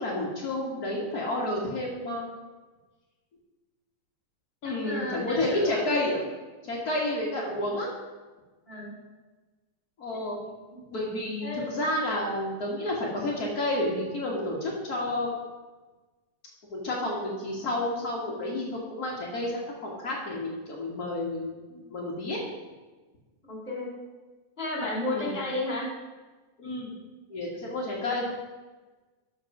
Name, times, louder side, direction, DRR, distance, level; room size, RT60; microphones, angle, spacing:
voice 1, 0.0-2.3 4.6-6.2 6.6-7.9 10.0-10.5 10.9-15.3 16.7-22.4 25.1-25.3 26.6-26.9 27.3-28.3, left 1 dB, 65° left, -4 dB, 0.9 m, -30 dB
voice 2, 4.8-5.9 6.8-7.0 8.7-8.9 10.6-10.8 11.4-11.7 23.5-23.9 24.6-25.9, left 2 dB, 20° left, -2 dB, 2.3 m, -32 dB
12.5 x 4.7 x 5.8 m, 1.3 s
omnidirectional pair, 4.0 m